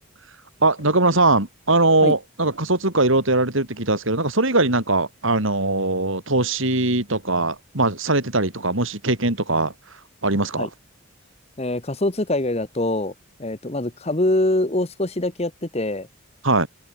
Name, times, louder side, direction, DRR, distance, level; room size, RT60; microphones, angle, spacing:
voice 1, 0.6-9.7 10.2-10.7 16.4-16.7, right 2 dB, 65° right, 3.9 m, -21 dB
voice 2, 11.6-13.1 13.4-16.1, left 1 dB, 30° left, 1.3 m, -24 dB
open air
head